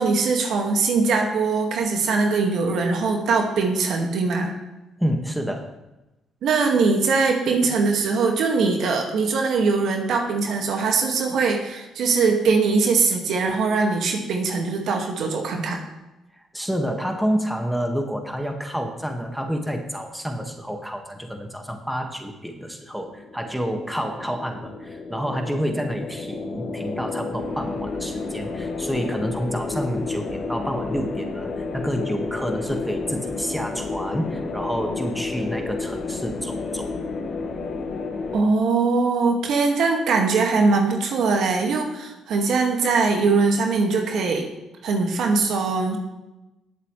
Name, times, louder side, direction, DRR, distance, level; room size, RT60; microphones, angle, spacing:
voice 1, 0.0-4.5 6.4-15.8 38.3-44.5 44.8-46.0, right 4 dB, 70° right, 2 dB, 2.0 m, -21 dB
voice 2, 5.0-5.7 16.3-36.9, equal, ahead, 3 dB, 1.8 m, -28 dB
sound 1, 22.9-38.4, left 3 dB, 55° left, 1.8 m, -31 dB
19.0 x 7.7 x 3.3 m, 0.99 s
supercardioid pair, 65°, 0 cm